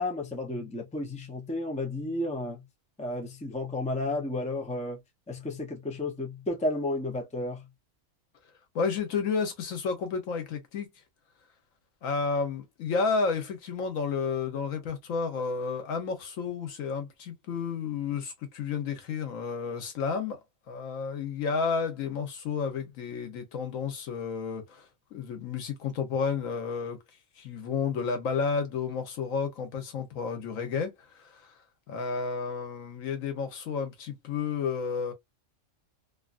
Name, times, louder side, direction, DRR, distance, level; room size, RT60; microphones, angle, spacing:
voice 1, 0.0-2.6 3.0-5.0 5.3-7.7, left 2 dB, 10° left, 0.5 m, -32 dB
voice 2, 8.7-10.9 12.0-20.4 20.7-24.8 25.1-27.0 27.4-31.5 31.9-35.1, left 5 dB, 85° left, 1.3 m, -31 dB
2.8 x 2.5 x 2.4 m
omnidirectional pair, 1.3 m